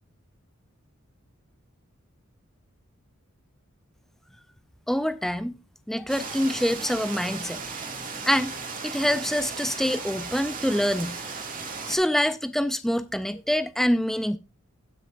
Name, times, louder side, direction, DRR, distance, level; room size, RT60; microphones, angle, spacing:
voice 1, 4.9-5.5 5.9-7.6 8.3-8.5 8.8-11.2 11.9-14.4, equal, ahead, 0.4 m, -25 dB
sound 1, 6.1-12.0, right 4 dB, 40° right, 2.1 m, -36 dB
16.0 x 6.5 x 2.5 m
head